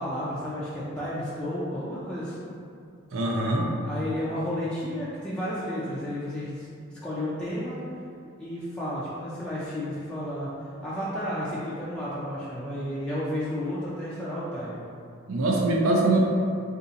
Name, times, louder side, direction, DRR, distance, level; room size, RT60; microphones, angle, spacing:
voice 1, 0.0-2.5 3.8-6.7 7.0-7.8 8.4-10.5 10.8-14.8, left 1 dB, 5° left, -10 dB, 0.3 m, -32 dB
voice 2, 3.1-3.6 15.3-16.2, right 2 dB, 80° right, -1 dB, 0.5 m, -23 dB
2.7 x 2.4 x 3.8 m, 2.4 s
head